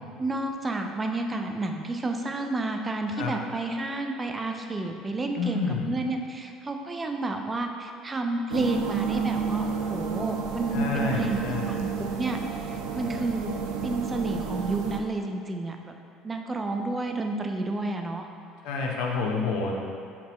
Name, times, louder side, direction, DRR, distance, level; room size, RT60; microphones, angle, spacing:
voice 1, 0.2-12.4 12.7-13.5 13.8-15.9 16.2-18.3, right 2 dB, 20° right, 4 dB, 0.5 m, -30 dB
voice 2, 5.4-5.9 10.7-11.7 18.6-19.7, left 4 dB, 75° left, -1 dB, 0.9 m, -28 dB
sound 1, 8.5-15.0, right 6 dB, 80° right, 0.5 m, -31 dB
7.4 x 4.2 x 3.0 m, 2.3 s
supercardioid pair, 100°, 0 cm